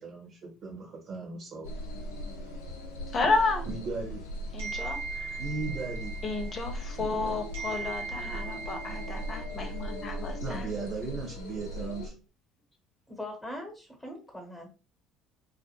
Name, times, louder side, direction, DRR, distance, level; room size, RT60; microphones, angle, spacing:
voice 1, 0.0-1.7 3.6-4.3 5.4-6.2 10.4-12.1, right 4 dB, 50° right, -2 dB, 1.0 m, -37 dB
sound 1, 1.6-12.1, equal, 80° left, 0.5 m, -38 dB
voice 2, 3.1-3.7 4.5-5.3 6.2-10.7, left 3 dB, 40° left, 5 dB, 0.8 m, -31 dB
sound 2, 4.6-7.2 7.5-10.1, right 5 dB, 80° right, 1.0 m, -40 dB
voice 3, 13.1-14.7, left 1 dB, 10° left, 1 dB, 1.1 m, -41 dB
2.5 x 2.1 x 2.9 m, 0.32 s
hypercardioid pair, 60°, 0 cm